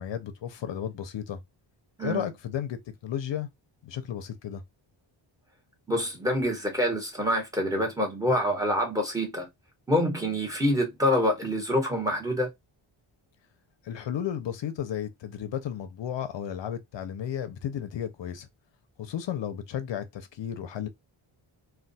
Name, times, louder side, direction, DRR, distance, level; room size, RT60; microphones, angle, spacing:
voice 1, 0.0-1.4 2.0-3.5 3.8-4.6 13.8-18.5 19.0-20.9, left 9 dB, 60° left, 0.6 m, -33 dB
voice 2, 5.9-9.5 9.9-12.5, equal, 5° right, 1.0 m, -26 dB
2.3 x 2.2 x 3.9 m
wide cardioid pair, 170°, 50 cm